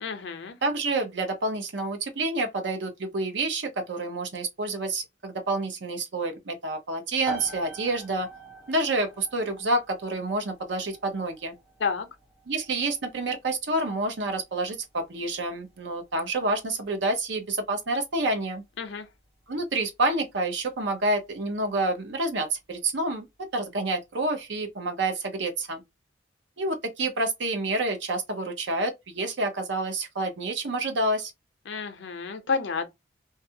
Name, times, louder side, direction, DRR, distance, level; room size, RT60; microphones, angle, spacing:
voice 1, 0.0-0.6 11.8-12.1 18.8-19.1 31.7-32.9, left 5 dB, 75° left, 0.5 m, -30 dB
voice 2, 0.6-8.3 8.7-11.5 12.5-18.6 19.5-23.3 23.5-25.8 26.6-31.3, right 2 dB, 75° right, 0.7 m, -28 dB
sound 1, 7.2-21.7, right 3 dB, 5° right, 1.4 m, -46 dB
2.5 x 2.3 x 2.7 m
head